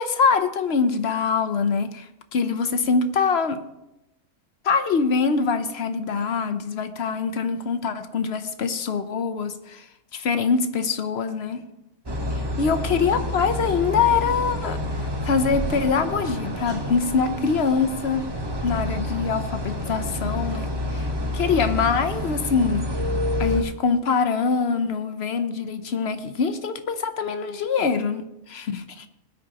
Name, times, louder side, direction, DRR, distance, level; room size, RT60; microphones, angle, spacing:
voice 1, 0.0-2.0 2.3-3.6 4.6-9.8 10.1-11.6 12.6-14.8 15.2-18.3 18.6-21.1 21.3-22.9 23.4-29.1, left 5 dB, 50° left, 10 dB, 1.0 m, -24 dB
sound 1, 12.1-23.6, left 1 dB, 20° right, 1.0 m, -28 dB
18.5 x 9.7 x 3.0 m, 0.88 s
omnidirectional pair, 1.5 m